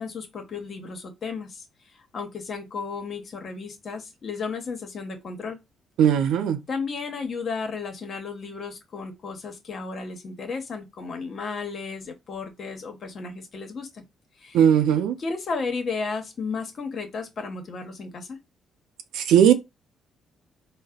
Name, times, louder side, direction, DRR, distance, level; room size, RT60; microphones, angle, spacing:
voice 1, 0.0-1.6 2.1-5.6 6.7-14.0 14.4-14.6 15.2-18.4, left 4 dB, 50° left, 1.0 m, -33 dB
voice 2, 6.0-6.6 14.5-15.2 19.1-19.5, right 9 dB, 85° right, 0.5 m, -18 dB
3.9 x 2.1 x 2.3 m
cardioid pair, 90°, 0 cm